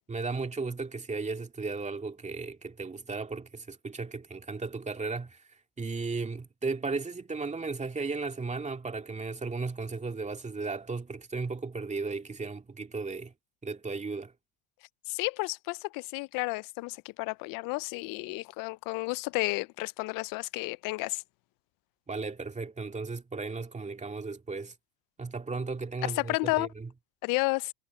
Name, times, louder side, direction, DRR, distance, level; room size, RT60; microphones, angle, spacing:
voice 1, 0.1-13.3 13.6-14.3 22.1-24.7 25.2-26.9, right 4 dB, 20° right, 2.3 m, -35 dB
voice 2, 15.1-21.2 26.2-26.7 27.2-27.7, left 24 dB, 60° left, 0.5 m, -32 dB
supercardioid pair, 100°, 38 cm